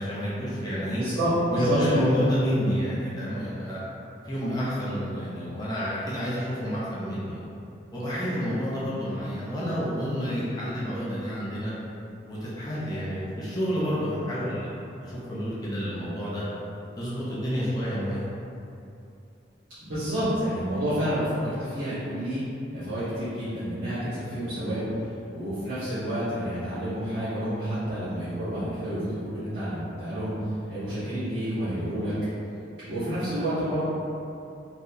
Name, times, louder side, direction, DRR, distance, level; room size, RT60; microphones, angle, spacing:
voice 1, 0.0-1.0 1.5-3.8 4.2-7.4 7.9-11.7 12.3-14.7 15.0-16.4 17.0-18.3, equal, 20° left, -9 dB, 0.7 m, -29 dB
voice 2, 0.9-2.1 19.8-22.4 22.7-24.9 25.3-30.3 30.7-32.1 32.9-33.8, equal, 65° right, -16 dB, 1.3 m, -29 dB
4.3 x 3.2 x 2.7 m, 2.7 s
head